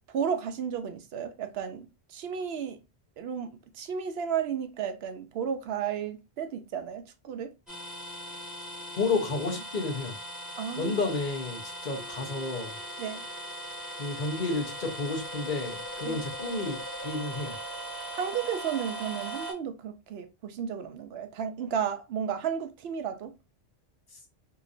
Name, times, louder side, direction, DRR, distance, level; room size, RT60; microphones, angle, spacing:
voice 1, 0.1-2.8 3.2-7.5 10.6-11.0 13.0-13.2 16.0-16.3 18.1-23.3, right 7 dB, 75° right, 0.8 m, -33 dB
sound 1, 7.7-19.5, right 1 dB, ahead, 1.5 m, -39 dB
voice 2, 9.0-10.1 10.8-12.7 14.0-16.8 17.0-17.5, left 3 dB, 45° left, 1.0 m, -31 dB
3.0 x 2.8 x 2.5 m
omnidirectional pair, 1.1 m